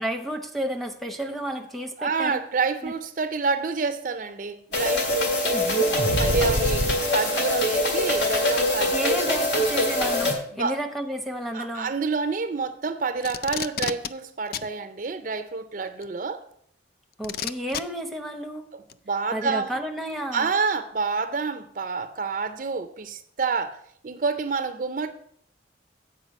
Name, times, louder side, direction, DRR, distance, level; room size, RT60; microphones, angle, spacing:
voice 1, 0.0-2.4 2.8-2.9 5.5-5.9 8.9-11.9 17.2-18.7 19.3-20.5, right 1 dB, ahead, 0.7 m, -31 dB
voice 2, 2.0-5.7 6.1-9.2 10.5-10.7 11.5-16.4 18.7-18.8 19.1-19.7 20.3-23.8 24.0-25.1, right 4 dB, 45° right, 0.5 m, -28 dB
sound 1, 4.7-10.3, left 1 dB, 75° left, 1.9 m, -23 dB
Packing tape duct tape, 13.2-14.1 14.5-14.7 16.0-16.1 17.2-17.8 18.9-19.0, left 8 dB, 55° left, 0.4 m, -30 dB
8.1 x 4.9 x 6.9 m
head